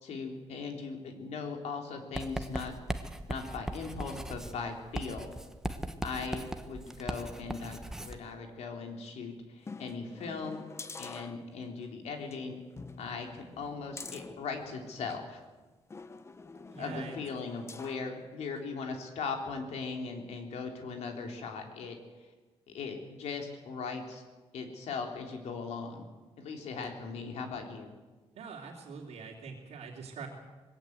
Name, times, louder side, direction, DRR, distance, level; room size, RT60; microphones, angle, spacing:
voice 1, 0.0-2.7 3.3-5.3 6.0-10.6 11.0-12.6 13.0-15.4 16.8-22.3 22.7-24.2 24.5-26.1 26.4-28.0, left 4 dB, 85° left, 3 dB, 3.6 m, -39 dB
Writing, 2.1-8.2, right 1 dB, 5° right, 1.2 m, -39 dB
sound 1, 9.6-11.9 12.2-12.4 12.8-15.3 15.9-18.1 18.6-18.7, left 4 dB, 25° left, 1.0 m, -47 dB
voice 2, 16.7-17.2 28.3-30.3, right 5 dB, 85° right, -3 dB, 3.1 m, -43 dB
21.5 x 17.5 x 8.1 m, 1.2 s
cardioid pair, 145°, 11 cm